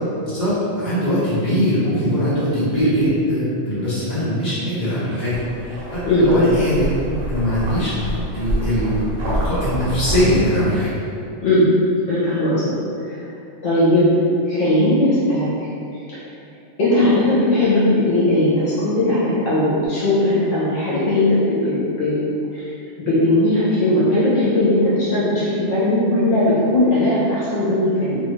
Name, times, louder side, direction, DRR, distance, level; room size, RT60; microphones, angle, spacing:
voice 1, 0.2-6.9 7.3-7.9 8.3-10.9, equal, 30° left, -13 dB, 1.3 m, -21 dB
sound 1, 5.3-10.3, right 1 dB, 85° right, 1.1 m, -27 dB
voice 2, 12.1-13.1 13.6-14.0 14.4-15.5 16.1-16.2 16.8-22.7 23.0-28.2, left 1 dB, 70° left, -10 dB, 1.2 m, -18 dB
2.8 x 2.4 x 3.1 m, 2.6 s
omnidirectional pair, 1.3 m